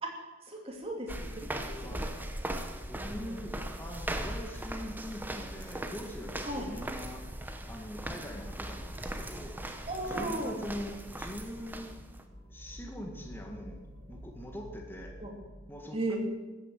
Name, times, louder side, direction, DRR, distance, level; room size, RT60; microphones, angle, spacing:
voice 1, 0.5-2.5 3.0-3.4 6.4-6.7 9.9-10.6 15.2-15.3 15.9-16.2, right 2 dB, 30° right, 0 dB, 2.9 m, -37 dB
sound 1, 0.8-15.6, equal, 55° right, 3.2 m, -51 dB
sound 2, 1.1-12.2, right 1 dB, 10° right, 0.9 m, -39 dB
voice 2, 1.8-2.2 2.9-7.3 7.7-9.6 10.0-11.9 12.5-13.8 14.1-15.2 15.7-16.2, equal, 10° left, 1 dB, 1.7 m, -43 dB
14.0 x 9.4 x 7.6 m, 1.2 s
head